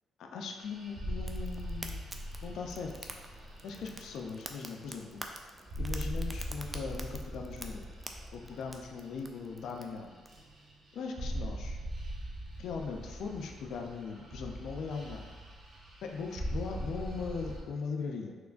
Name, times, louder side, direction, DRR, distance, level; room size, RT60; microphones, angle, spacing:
voice 1, 0.2-3.1 3.6-5.2 5.8-7.9 8.3-10.2 11.0-11.8 12.6-15.3 16.0-18.3, left 5 dB, 75° left, 3 dB, 0.4 m, -39 dB
sound 1, 0.6-5.4 5.7-10.0 10.3-10.8 11.0-17.6, equal, 50° right, 0.8 m, -41 dB
Fire, 1.2-10.3, right 2 dB, 20° right, 0.3 m, -48 dB
3.6 x 3.1 x 2.5 m, 1.4 s
cardioid pair, 90°, 0 cm